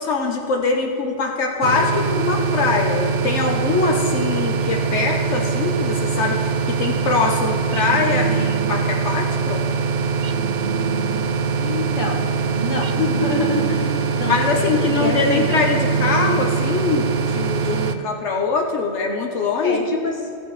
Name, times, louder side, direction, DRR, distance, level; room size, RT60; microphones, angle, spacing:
voice 1, 0.0-9.6 14.2-19.8, left 4 dB, 75° left, 2 dB, 1.1 m, -22 dB
sound 1, 1.6-17.9, right 5 dB, 60° right, 0.8 m, -23 dB
sound 2, 7.7-9.1 10.2-11.6 12.8-14.2 15.5-16.9, right 8 dB, 85° right, 0.9 m, -29 dB
voice 2, 11.6-12.2 12.6-15.6 18.3-18.4 19.6-20.2, left 2 dB, 45° left, 0 dB, 1.4 m, -26 dB
16.0 x 8.5 x 3.1 m, 2.5 s
omnidirectional pair, 1.2 m